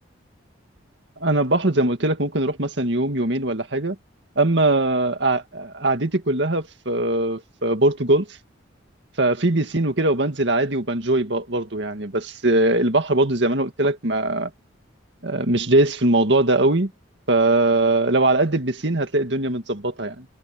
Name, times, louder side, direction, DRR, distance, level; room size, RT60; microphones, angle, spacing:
voice 1, 1.2-4.0 4.4-8.3 9.2-14.5 15.2-16.9 17.3-20.3, right 2 dB, 60° right, 2.1 m, -21 dB
head